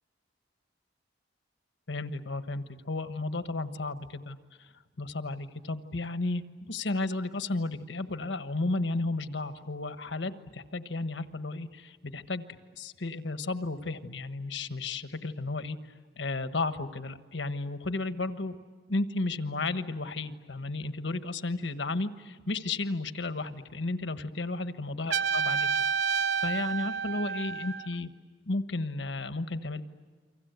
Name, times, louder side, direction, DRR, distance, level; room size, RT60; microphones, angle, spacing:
voice 1, 1.9-4.7 5.0-12.4 12.8-15.8 16.2-18.6 18.9-25.7 26.1-28.1 28.5-29.8, left 2 dB, 70° left, 10 dB, 1.3 m, -33 dB
Trumpet, 25.1-28.0, right 6 dB, 65° right, 0.8 m, -29 dB
29.5 x 25.0 x 8.2 m, 1.5 s
head